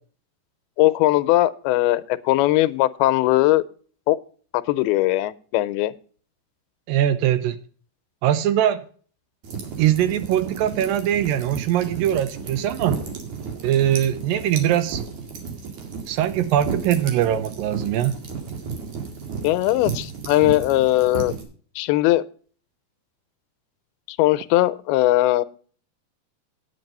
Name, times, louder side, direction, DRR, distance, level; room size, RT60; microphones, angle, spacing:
voice 1, 0.8-3.6 4.1-4.2 4.5-5.9 19.4-21.3 21.8-22.2 24.1-25.4, left 16 dB, 85° left, 2.6 m, -19 dB
voice 2, 6.9-7.6 8.2-8.9 9.8-13.0 13.6-15.0 16.1-18.1, right 11 dB, 80° right, 2.2 m, -21 dB
sound 1, 9.4-21.4, right 5 dB, 55° right, 3.1 m, -33 dB
9.5 x 9.3 x 5.3 m
omnidirectional pair, 4.4 m